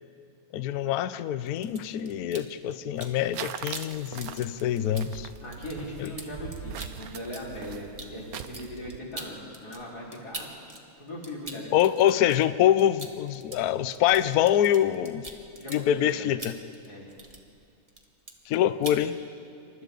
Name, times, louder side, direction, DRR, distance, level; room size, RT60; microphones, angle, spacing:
voice 1, 0.5-5.3 6.0-6.1 11.7-15.3 15.7-16.5 18.5-19.2, left 11 dB, 85° left, 13 dB, 0.8 m, -25 dB
sound 1, 1.4-3.2 3.5-10.8 11.1-17.6 17.9-18.6 18.8-19.0, right 2 dB, 20° right, 1.4 m, -44 dB
sound 2, 3.0-9.0, right 9 dB, 75° right, 0.8 m, -41 dB
voice 2, 5.4-10.5 11.0-11.9 15.6-16.1 16.9-17.1, left 1 dB, 45° left, -5 dB, 4.9 m, -39 dB
28.0 x 25.0 x 4.0 m, 2.4 s
omnidirectional pair, 2.4 m